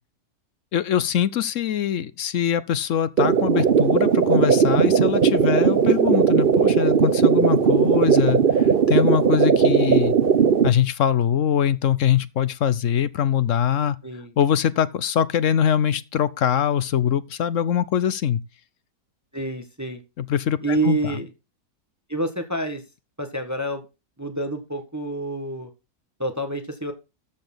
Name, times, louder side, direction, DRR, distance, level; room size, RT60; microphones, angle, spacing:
voice 1, 0.7-10.2 10.6-14.0 14.4-18.4 20.2-21.2, left 9 dB, 60° left, 1.0 m, -23 dB
sound 1, 3.2-10.7, right 6 dB, 45° right, 0.9 m, -18 dB
voice 2, 19.3-20.0 20.6-21.3 22.1-22.8 23.2-23.8 24.2-25.7 26.2-26.9, right 2 dB, 10° right, 1.5 m, -27 dB
13.0 x 6.9 x 3.9 m
omnidirectional pair, 1.6 m